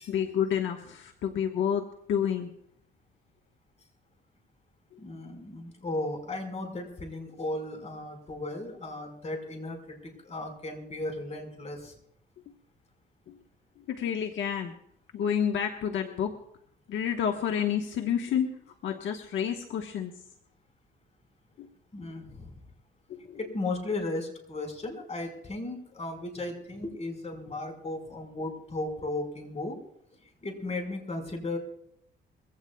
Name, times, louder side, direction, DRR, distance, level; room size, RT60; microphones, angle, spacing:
voice 1, 0.1-2.5 13.3-13.4 13.9-14.7 15.1-16.3 16.9-18.5 18.8-20.1 23.1-23.4, left 8 dB, 75° left, 4 dB, 1.2 m, -29 dB
voice 2, 5.0-11.9 21.9-22.6 23.4-29.8 30.4-31.6, left 2 dB, 35° left, 4 dB, 4.8 m, -35 dB
23.0 x 16.5 x 2.3 m, 0.73 s
cardioid pair, 90°, 20 cm